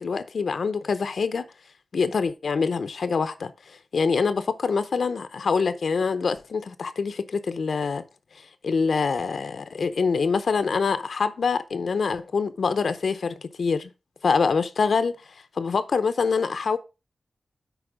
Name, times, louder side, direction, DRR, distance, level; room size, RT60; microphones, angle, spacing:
voice 1, 0.0-1.4 1.9-8.0 8.6-13.9 14.2-15.2 15.6-16.8, left 5 dB, 80° left, 0.7 m, -25 dB
8.1 x 4.7 x 5.0 m
wide cardioid pair, 115°, 0 cm